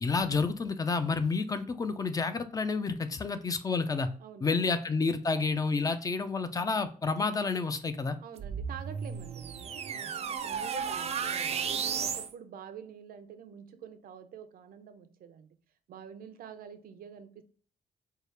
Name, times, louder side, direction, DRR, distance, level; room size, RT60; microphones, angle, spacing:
voice 1, 0.0-4.1 4.4-8.2, left 4 dB, 25° left, 0.4 m, -30 dB
voice 2, 4.2-4.5 8.2-15.6 15.9-17.4, right 7 dB, 85° right, 0.6 m, -47 dB
sound 1, 8.4-12.3, right 7 dB, 45° right, 0.4 m, -34 dB
4.6 x 2.4 x 3.2 m
wide cardioid pair, 145°, 15 cm